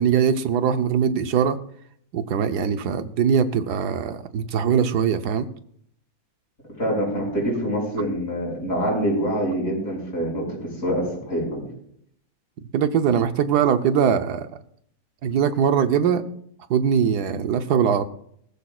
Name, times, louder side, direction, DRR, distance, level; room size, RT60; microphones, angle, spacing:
voice 1, 0.0-1.6 2.1-5.5 12.7-14.5 15.2-16.2 16.7-18.0, right 7 dB, 80° right, 10 dB, 1.4 m, -21 dB
voice 2, 6.8-11.7, equal, 55° left, -2 dB, 6.1 m, -25 dB
20.0 x 14.0 x 2.4 m, 0.68 s
omnidirectional pair, 1.7 m